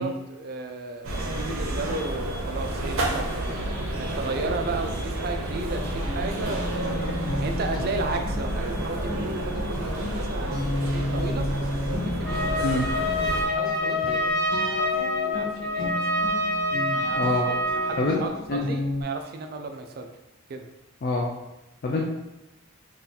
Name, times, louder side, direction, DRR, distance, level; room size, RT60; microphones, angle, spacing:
voice 1, 0.0-11.5 11.8-12.8 13.4-16.1 16.9-20.1 20.5-20.7 21.9-22.1, right 3 dB, 45° right, 5 dB, 0.3 m, -35 dB
sound 1, 1.0-13.4, right 1 dB, 80° right, 0.7 m, -30 dB
sound 2, 5.6-19.0, left 1 dB, 75° left, 0.9 m, -33 dB
Trumpet, 12.2-18.1, left 1 dB, 5° left, 0.6 m, -26 dB
voice 2, 17.1-17.5 18.0-18.2 18.5-18.6 21.0-21.3 21.8-22.1, left 2 dB, 45° left, -2 dB, 0.3 m, -25 dB
2.7 x 2.4 x 3.9 m, 0.96 s
head